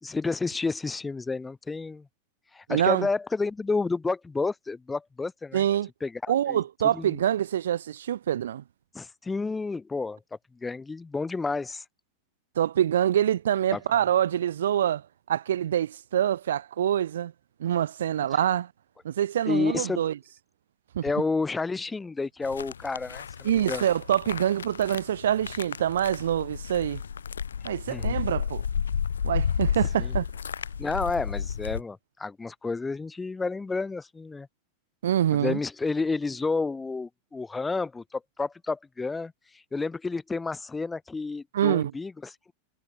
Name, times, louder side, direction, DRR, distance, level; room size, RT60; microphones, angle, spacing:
voice 1, 0.0-2.1 2.5-5.6 6.0-6.6 6.9-7.2 8.9-10.2 10.6-11.8 13.7-13.8 19.5-20.1 21.0-23.8 27.9-28.3 30.0-30.1 30.8-34.5 35.3-39.3 39.7-42.5, left 3 dB, 10° left, 2.5 m, -30 dB
voice 2, 2.7-3.1 5.5-5.9 6.3-8.6 12.6-15.0 15.3-17.3 17.6-18.7 19.0-20.1 20.9-21.1 23.4-27.0 27.6-28.6 29.2-30.3 35.0-35.6 41.5-41.9, right 10 dB, 60° right, 1.2 m, -25 dB
sound 1, 22.4-31.8, left 7 dB, 70° left, 4.0 m, -32 dB
figure-of-eight pair, 90°, 0 cm